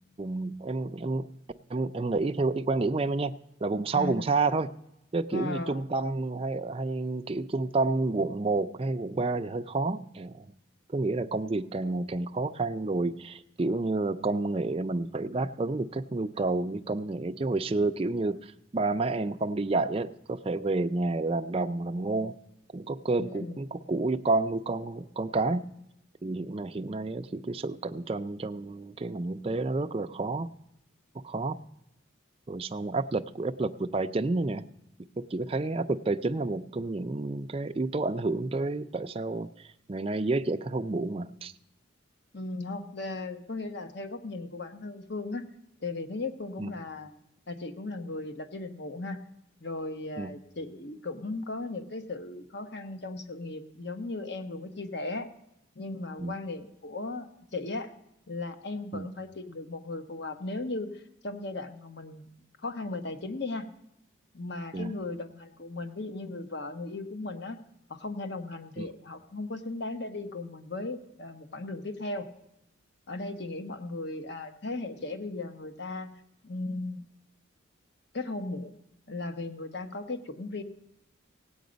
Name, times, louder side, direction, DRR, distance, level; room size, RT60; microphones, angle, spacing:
voice 1, 0.2-1.3 1.7-3.3 3.6-4.7 5.1-10.5 10.9-22.4 22.7-25.7 26.2-30.5 31.2-31.6 32.5-34.6 35.3-41.5 46.6-46.7 50.2-50.3 56.2-56.4 58.9-59.1 64.7-64.9 68.8-68.9, right 3 dB, 25° right, 9 dB, 0.4 m, -30 dB
voice 2, 3.9-4.3 5.3-5.8 23.2-23.6 42.3-45.5 45.8-47.2 47.5-49.2 49.6-55.3 55.8-57.9 58.3-62.3 62.6-63.7 64.3-67.6 67.9-72.3 73.1-76.1 76.4-77.0 78.1-78.7 79.1-80.6, left 2 dB, 55° left, 8 dB, 1.0 m, -37 dB
17.0 x 8.7 x 5.1 m, 0.85 s
head